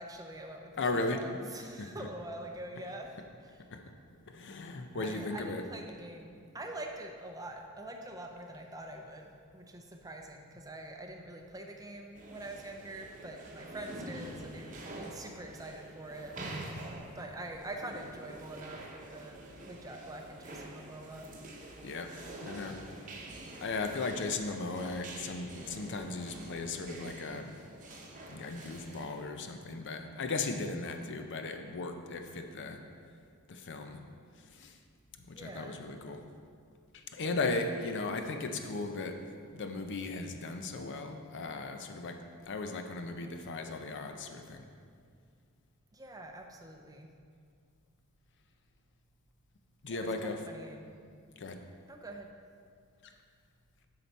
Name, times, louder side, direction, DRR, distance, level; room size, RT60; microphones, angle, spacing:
voice 1, 0.0-3.1 3.4-3.6 4.9-16.3 17.1-19.4 19.7-21.3 35.3-35.8 45.9-47.1 49.9-50.9 51.9-52.3, right 1 dB, 15° right, 3 dB, 0.5 m, -45 dB
voice 2, 0.8-1.2 1.8-2.1 3.7-3.8 4.1-5.6 21.8-23.2 23.6-27.6 28.3-32.8 33.5-34.0 34.3-34.8 35.2-36.2 36.9-39.2 39.5-44.7 49.8-50.5 51.4-51.6 53.0-53.1, left 3 dB, 55° left, 5 dB, 0.5 m, -37 dB
sound 1, 12.1-29.2, right 1 dB, 35° right, 0.9 m, -47 dB
7.7 x 5.8 x 4.1 m, 2.2 s
head